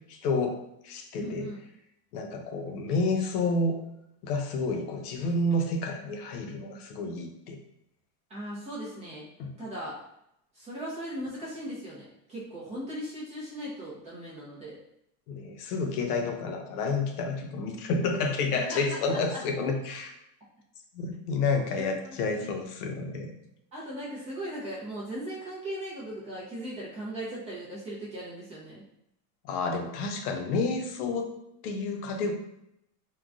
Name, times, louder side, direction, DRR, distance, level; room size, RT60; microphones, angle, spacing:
voice 1, 0.2-0.6 0.8-1.5 2.1-3.8 4.2-7.6 9.4-9.5 15.3-20.1 20.9-23.3 29.4-31.3 31.6-32.3, left 3 dB, 75° left, 4 dB, 0.7 m, -29 dB
voice 2, 1.2-1.6 8.3-9.3 9.6-10.0 10.5-14.8 18.5-19.4 21.7-22.5 23.7-28.8, right 1 dB, 15° right, -7 dB, 0.5 m, -38 dB
3.7 x 2.2 x 2.4 m, 0.80 s
supercardioid pair, 150°, 46 cm